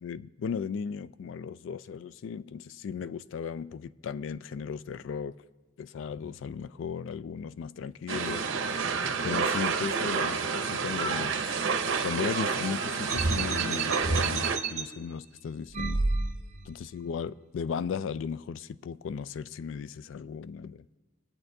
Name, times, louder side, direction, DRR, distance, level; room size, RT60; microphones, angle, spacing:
voice 1, 0.0-5.4 5.8-9.0 9.2-11.5 12.0-16.0 16.7-20.9, left 6 dB, 75° left, 0.3 m, -36 dB
sound 1, 8.1-14.6, right 5 dB, 75° right, 0.7 m, -29 dB
sound 2, 13.1-14.8 15.7-16.7, right 3 dB, 35° right, 0.6 m, -29 dB
21.5 x 8.6 x 2.6 m
head